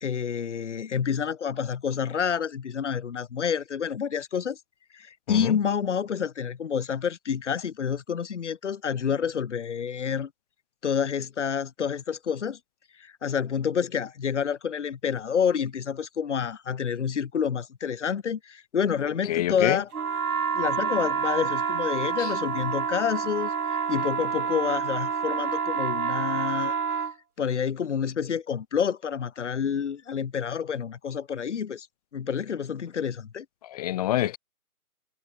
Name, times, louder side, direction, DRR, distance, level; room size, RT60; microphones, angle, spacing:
voice 1, 0.0-4.6 4.9-10.3 10.8-12.6 13.0-19.9 20.5-23.5 23.9-26.7 27.4-31.9 32.1-33.5, left 7 dB, 50° left, 2.2 m, -28 dB
voice 2, 19.3-19.8 22.2-22.3 33.6-34.4, left 14 dB, 25° left, 2.9 m, -26 dB
sound 1, 19.9-27.1, right 6 dB, 70° right, 2.1 m, -28 dB
figure-of-eight pair, 155°, 46 cm